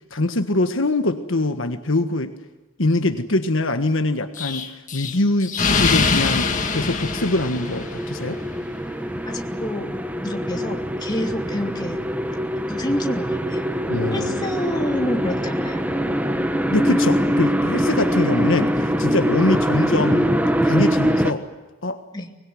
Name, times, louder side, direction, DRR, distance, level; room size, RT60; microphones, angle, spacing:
voice 1, 0.1-2.3 2.8-8.4 13.9-14.6 16.7-20.3 20.6-21.5 21.8-22.0, left 2 dB, 70° left, 7 dB, 1.5 m, -23 dB
Explosion, 4.4-8.2, left 4 dB, 40° left, 1.9 m, -23 dB
sound 1, 6.4-21.3, equal, 10° right, 1.4 m, -23 dB
voice 2, 9.2-9.9 10.2-12.0 12.7-13.7 14.1-15.8 22.1-22.3, left 1 dB, 20° left, 2 dB, 2.7 m, -28 dB
24.5 x 21.0 x 9.4 m, 1.1 s
head